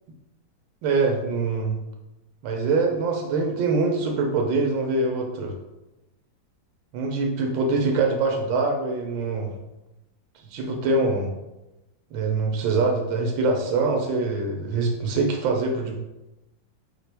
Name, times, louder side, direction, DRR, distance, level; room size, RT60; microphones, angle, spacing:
voice 1, 0.8-1.8 2.4-5.5 6.9-9.5 10.5-11.3 12.1-16.0, right 3 dB, 80° right, 2 dB, 1.3 m, -24 dB
4.3 x 2.9 x 3.3 m, 0.98 s
omnidirectional pair, 2.1 m